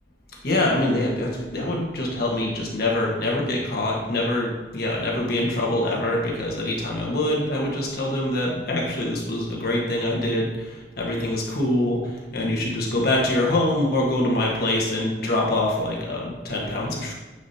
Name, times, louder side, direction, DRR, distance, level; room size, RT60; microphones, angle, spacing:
voice 1, 0.4-17.1, left 1 dB, 55° left, -2 dB, 1.5 m, -24 dB
9.7 x 5.0 x 2.8 m, 1.2 s
head